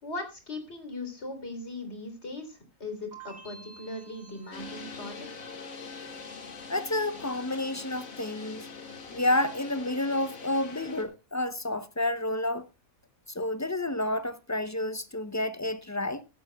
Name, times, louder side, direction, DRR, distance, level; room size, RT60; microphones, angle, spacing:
voice 1, 0.0-5.5, left 2 dB, 50° left, 3.7 m, -39 dB
sound 1, 3.1-8.1 8.4-9.1, right 4 dB, 80° right, 6.0 m, -53 dB
sound 2, 4.5-11.0, left 5 dB, 70° left, 2.2 m, -43 dB
voice 2, 6.7-8.7 9.1-12.7 13.3-16.2, left 1 dB, 25° left, 0.3 m, -30 dB
16.5 x 12.5 x 2.2 m
omnidirectional pair, 1.5 m